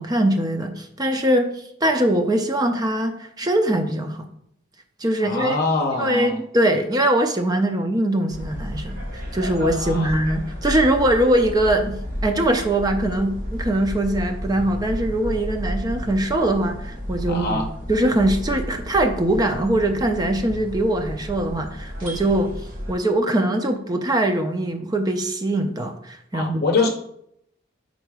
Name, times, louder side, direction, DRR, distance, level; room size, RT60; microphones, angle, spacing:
voice 1, 0.0-4.3 5.0-5.6 6.0-17.6 17.9-22.5 22.9-26.6, right 1 dB, 20° right, 6 dB, 0.5 m, -22 dB
voice 2, 5.2-6.4 9.6-10.2 17.3-17.7 26.3-26.9, left 3 dB, 55° left, 2 dB, 0.7 m, -24 dB
sound 1, 8.3-22.9, equal, 80° right, 2.3 m, -32 dB
5.5 x 3.9 x 4.7 m, 0.72 s
head